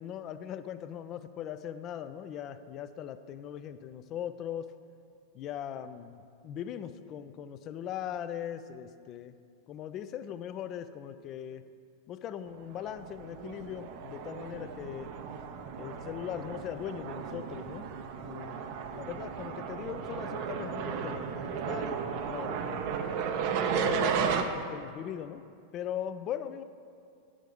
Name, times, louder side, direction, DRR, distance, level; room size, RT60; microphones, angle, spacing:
voice 1, 0.0-4.7 5.3-9.3 9.7-11.6 12.1-15.1 15.8-17.9 18.2-18.6 18.9-22.9 23.7-25.4 25.7-26.6, left 9 dB, 35° left, 12 dB, 0.4 m, -40 dB
sound 1, 12.7-24.4, right 6 dB, 45° right, 0.5 m, -34 dB
9.8 x 5.0 x 5.2 m, 2.4 s
figure-of-eight pair, 90°, 0 cm